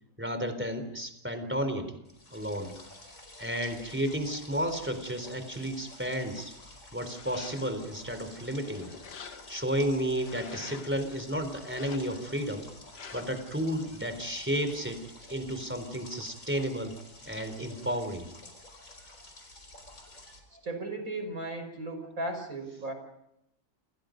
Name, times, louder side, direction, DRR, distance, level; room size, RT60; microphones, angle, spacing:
voice 1, 0.2-2.0 2.3-2.7 3.4-6.5 6.9-8.9 9.5-12.7 13.1-15.0 15.3-17.0 17.3-18.3, equal, 5° right, 9 dB, 3.9 m, -32 dB
sound 1, 2.0-20.4, left 2 dB, 50° left, 5.5 m, -50 dB
sound 2, 7.0-7.9 8.4-9.7 10.1-11.0 11.6-12.4 12.9-13.5, left 6 dB, 80° left, 2.1 m, -47 dB
voice 2, 20.5-22.9, right 2 dB, 55° right, 7 dB, 6.2 m, -36 dB
29.0 x 28.5 x 5.3 m, 0.82 s
omnidirectional pair, 1.8 m